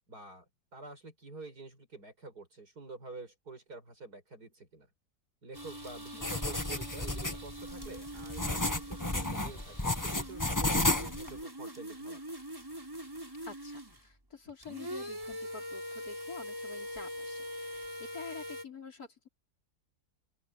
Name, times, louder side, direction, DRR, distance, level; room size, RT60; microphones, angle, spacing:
voice 1, 0.1-4.9 5.4-12.3, right 3 dB, 75° right, 7.0 m, -48 dB
sound 1, 5.5-14.1 14.5-18.6, equal, 15° right, 5.5 m, -43 dB
sound 2, 6.2-11.4, left 2 dB, 10° left, 1.4 m, -32 dB
voice 2, 13.5-19.3, left 5 dB, 70° left, 5.0 m, -48 dB
open air
omnidirectional pair, 1.7 m